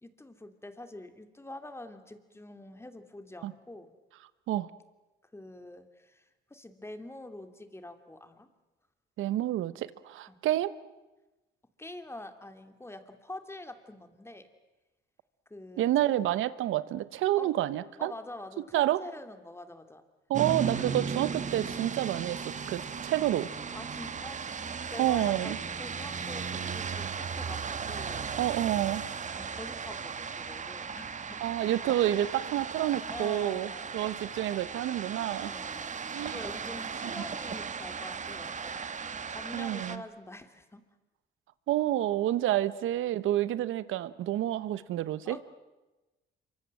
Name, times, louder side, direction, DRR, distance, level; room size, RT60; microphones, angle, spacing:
voice 1, 0.0-3.9 5.3-6.2 6.5-8.5 10.3-10.4 11.8-14.5 15.5-15.8 17.3-17.5 18.0-20.0 23.7-28.2 29.4-31.4 33.1-34.0 35.4-35.9 36.3-38.8 39.3-40.8 42.4-42.6 45.3-45.4, left 2 dB, 10° left, 8 dB, 2.8 m, -45 dB
voice 2, 9.2-10.7 15.8-18.1 18.7-19.0 20.3-22.4 22.7-23.5 25.0-25.6 28.4-29.1 31.4-35.5 36.1-36.4 39.5-40.0 41.7-45.4, right 13 dB, 85° right, 16 dB, 1.1 m, -29 dB
sound 1, 20.3-40.0, right 6 dB, 40° right, 1.4 m, -37 dB
26.5 x 24.5 x 7.7 m, 1.1 s
cardioid pair, 90°, 20 cm